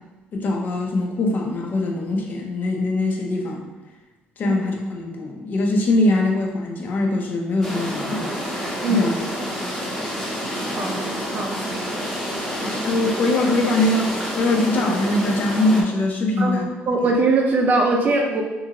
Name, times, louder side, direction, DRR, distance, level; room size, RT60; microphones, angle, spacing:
voice 1, 0.3-3.6 4.4-8.3 8.9-9.1 12.6-16.7 17.0-17.1, left 2 dB, 50° left, 0 dB, 0.6 m, -22 dB
sound 1, 7.6-15.8, equal, 5° left, 0.8 m, -28 dB
voice 2, 16.9-18.4, right 2 dB, 45° right, 1 dB, 0.5 m, -20 dB
2.7 x 2.5 x 2.9 m, 1.2 s
cardioid pair, 105°, 4 cm